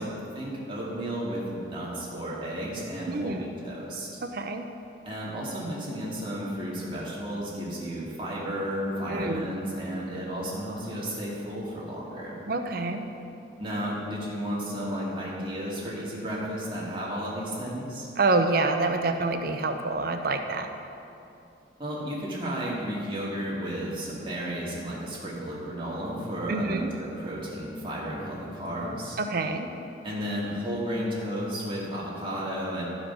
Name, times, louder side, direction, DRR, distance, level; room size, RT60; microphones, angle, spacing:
voice 1, 0.0-4.2 5.1-12.4 13.6-18.1 21.8-29.2 30.0-32.8, equal, 30° right, -6 dB, 2.0 m, -33 dB
voice 2, 3.1-3.4 4.2-4.7 9.1-9.5 12.5-13.0 18.2-20.7 26.5-26.9 29.2-29.7, right 3 dB, 55° right, 6 dB, 0.6 m, -27 dB
13.0 x 5.0 x 5.5 m, 2.7 s
head